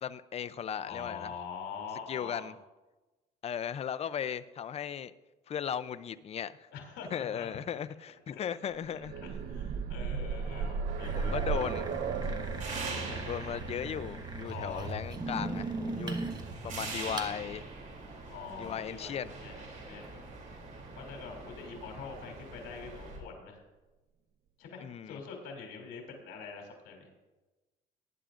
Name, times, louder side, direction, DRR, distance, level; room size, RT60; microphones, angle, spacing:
voice 1, 0.0-1.3 2.1-2.5 3.4-5.1 5.5-6.7 7.1-9.1 11.1-11.9 12.8-16.2 16.6-17.6 18.6-19.3 24.8-25.2, left 8 dB, 40° left, 0.5 m, -37 dB
voice 2, 0.8-2.5 6.7-7.5 8.3-8.5 9.4-11.7 14.4-14.9 18.3-20.2 21.0-23.6 24.6-27.1, left 5 dB, 80° left, 2.9 m, -44 dB
sound 1, 8.8-16.6 17.8-17.9 18.2-18.3, right 5 dB, 65° right, 0.9 m, -36 dB
sound 2, 10.9-23.2, right 3 dB, 50° right, 3.1 m, -44 dB
sound 3, 11.0-17.3, right 2 dB, 25° right, 1.2 m, -39 dB
19.0 x 10.0 x 2.5 m
cardioid pair, 110°, 17 cm